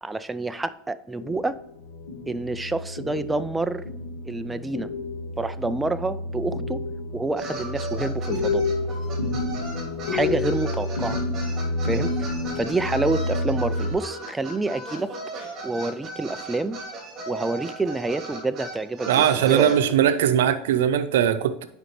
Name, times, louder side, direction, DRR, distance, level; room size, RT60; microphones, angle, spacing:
voice 1, 0.0-1.6 2.3-3.8 4.2-4.9 5.4-6.8 7.1-8.6 10.1-11.2 11.8-12.1 12.6-15.1 15.6-16.8 17.3-19.7, right 2 dB, 10° right, 0.4 m, -28 dB
sound 1, 1.2-13.9, left 2 dB, 80° left, 1.6 m, -29 dB
sound 2, 7.4-19.8, right 2 dB, 30° right, 2.9 m, -37 dB
voice 2, 19.1-21.7, right 9 dB, 85° right, 0.7 m, -20 dB
9.7 x 5.1 x 3.2 m
supercardioid pair, 130°, 0 cm